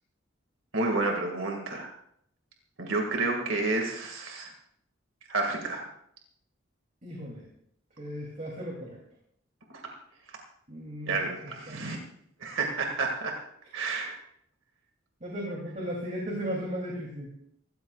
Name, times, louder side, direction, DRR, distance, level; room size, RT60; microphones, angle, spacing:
voice 1, 0.7-1.9 2.8-4.5 5.3-5.9 11.1-12.0 12.4-13.4 13.7-14.2, right 3 dB, 75° right, 2 dB, 2.1 m, -30 dB
voice 2, 7.0-7.4 8.0-9.0 10.7-11.2 11.7-11.8 15.2-17.3, equal, 35° right, -2 dB, 2.9 m, -35 dB
25.5 x 14.0 x 2.4 m, 0.70 s
head